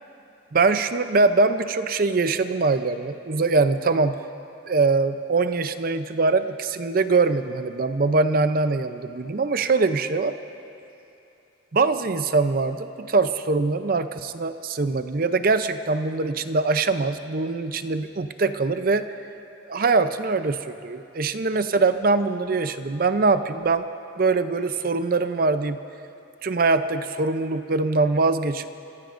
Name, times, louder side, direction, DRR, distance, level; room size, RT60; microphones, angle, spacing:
voice 1, 0.5-4.2 4.7-10.4 11.7-19.1 19.7-23.9 24.2-25.8 26.4-28.7, right 3 dB, 50° right, 10 dB, 0.6 m, -23 dB
29.5 x 15.0 x 2.6 m, 2.8 s
head